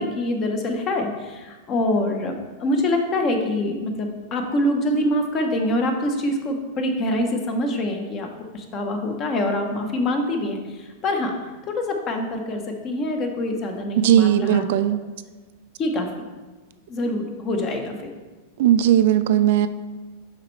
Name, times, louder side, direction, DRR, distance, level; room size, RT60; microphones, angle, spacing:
voice 1, 0.0-2.3 2.6-8.3 8.5-11.3 11.7-14.6 15.8-16.1 16.9-17.9, left 1 dB, 30° left, 4 dB, 0.8 m, -25 dB
voice 2, 14.0-15.0 18.6-19.7, right 11 dB, 65° right, 11 dB, 0.3 m, -17 dB
6.5 x 5.1 x 3.1 m, 1.3 s
supercardioid pair, 140°, 0 cm